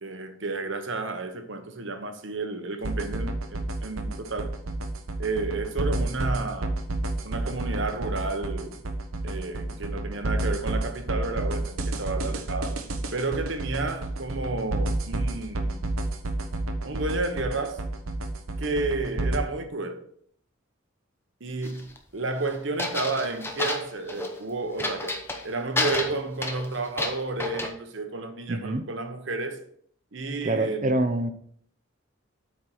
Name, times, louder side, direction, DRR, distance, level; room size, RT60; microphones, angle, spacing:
voice 1, 0.0-4.6 5.2-6.7 7.2-8.8 9.2-12.8 13.1-15.8 16.8-17.8 18.6-20.0 21.4-29.6 30.1-31.0, right 3 dB, 60° right, 1.0 m, -31 dB
sound 1, 2.8-19.4, right 2 dB, 90° right, 1.0 m, -30 dB
sound 2, 21.6-22.0 22.8-24.4 24.8-25.5 25.8-27.7, left 2 dB, 10° left, 0.8 m, -30 dB
voice 2, 28.5-28.8 30.4-31.3, right 2 dB, 35° right, 0.7 m, -25 dB
8.5 x 4.7 x 4.6 m
head